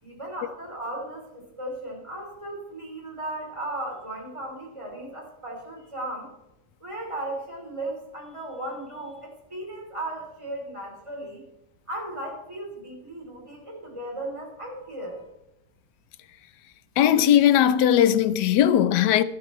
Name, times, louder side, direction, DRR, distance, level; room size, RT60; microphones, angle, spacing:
voice 1, 0.0-6.3 6.8-11.4 11.9-15.3, right 1 dB, 20° right, 3.5 m, -36 dB
voice 2, 17.0-19.2, left 10 dB, 85° left, 1.3 m, -19 dB
13.0 x 11.5 x 3.2 m
omnidirectional pair, 1.7 m